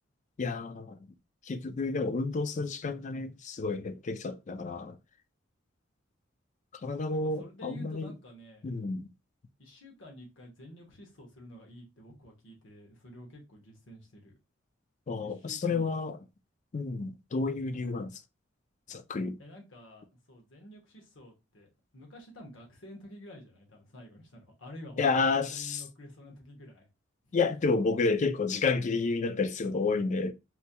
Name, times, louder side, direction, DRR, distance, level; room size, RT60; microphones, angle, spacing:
voice 1, 0.4-1.0 1.4-5.0 6.8-8.1 8.6-9.1 15.1-16.2 16.7-18.2 18.9-19.4 25.0-25.8 27.3-30.3, left 4 dB, 40° left, 0.4 m, -30 dB
voice 2, 7.1-8.7 9.6-14.3 15.2-16.0 19.4-26.9 27.2-27.4, equal, 70° left, 1.2 m, -50 dB
4.3 x 2.2 x 2.8 m
head